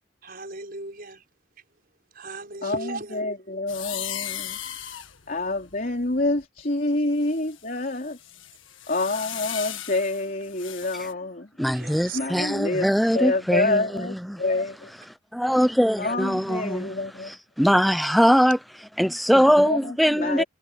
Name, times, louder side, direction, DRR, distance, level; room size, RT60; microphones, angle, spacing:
voice 1, 0.2-1.2 2.1-3.2 11.7-12.2, right 3 dB, 45° right, 6.1 m, -37 dB
voice 2, 2.6-4.6 5.3-8.2 8.9-11.5 12.1-12.9 13.1-14.9 16.0-17.3 19.6-20.4, left 2 dB, 45° left, 3.6 m, -27 dB
sound 1, 3.7-6.6 7.2-11.1, left 11 dB, 70° left, 1.7 m, -37 dB
voice 3, 11.6-14.4 15.3-16.9 17.2-20.4, equal, ahead, 0.8 m, -22 dB
head